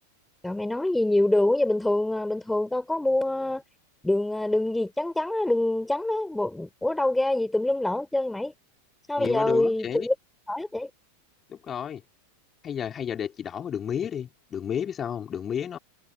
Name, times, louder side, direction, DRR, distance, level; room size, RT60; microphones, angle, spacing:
voice 1, 0.4-3.6 4.0-8.5 9.1-10.1 10.5-10.9, left 1 dB, 5° left, 4.3 m, -25 dB
voice 2, 9.2-10.1 11.5-12.0 12.6-15.8, left 8 dB, 25° left, 4.1 m, -31 dB
figure-of-eight pair, 90°, 0 cm